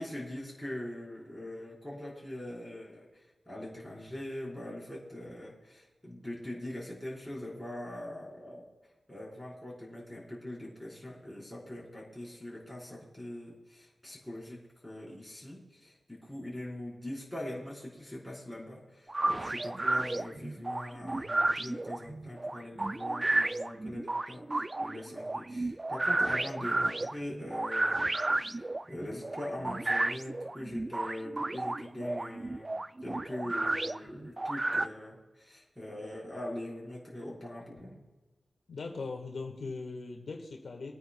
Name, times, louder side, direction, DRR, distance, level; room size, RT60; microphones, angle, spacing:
voice 1, 0.0-8.7 9.1-38.0, left 1 dB, 5° left, -5 dB, 4.5 m, -42 dB
sound 1, 19.1-34.9, right 2 dB, 25° right, 0.3 m, -32 dB
voice 2, 38.7-40.9, left 3 dB, 70° left, 2 dB, 1.6 m, -39 dB
25.5 x 9.3 x 2.3 m, 1.2 s
wide cardioid pair, 105°, 0 cm